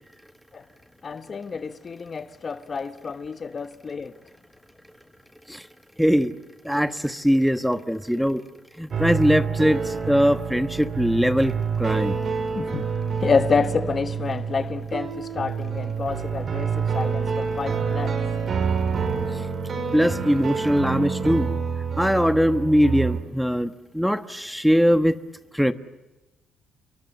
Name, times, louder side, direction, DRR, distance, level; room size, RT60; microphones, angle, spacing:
voice 1, 1.0-4.1 12.6-12.8 13.2-18.2, left 5 dB, 40° left, 1.2 m, -28 dB
voice 2, 6.0-6.3 6.6-8.4 8.8-12.2 19.9-21.5 22.0-25.2 25.5-25.7, equal, ahead, 1.2 m, -21 dB
sound 1, 8.9-23.2, right 6 dB, 50° right, 5.4 m, -27 dB
29.0 x 24.0 x 8.4 m
cardioid pair, 90°, 0 cm